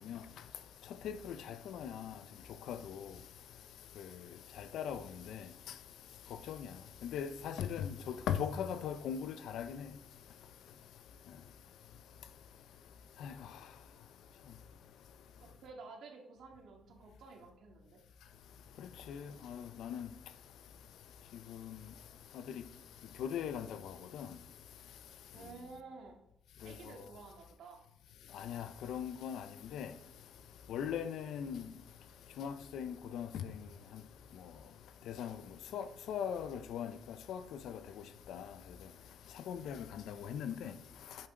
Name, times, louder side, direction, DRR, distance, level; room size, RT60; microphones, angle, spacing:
voice 1, 1.0-1.4 1.7-2.1 2.7-3.0 4.7-5.0 5.3-5.4 6.5-6.6 7.0-7.9 8.3-9.8 13.2-13.3 19.1-20.1 23.2-23.7 24.1-24.3 28.4-29.4 29.7-29.9 30.7-31.6 32.4-33.3 35.1-35.3 35.7-36.9 37.3-37.4 37.6-37.7 38.3-38.4 39.5-40.7, left 8 dB, 80° left, 0.7 m, -39 dB
voice 2, 15.4-18.0 25.3-26.2 26.6-27.8, right 4 dB, 70° right, 2.1 m, -52 dB
8.6 x 7.8 x 3.8 m
cardioid pair, 115°, 0 cm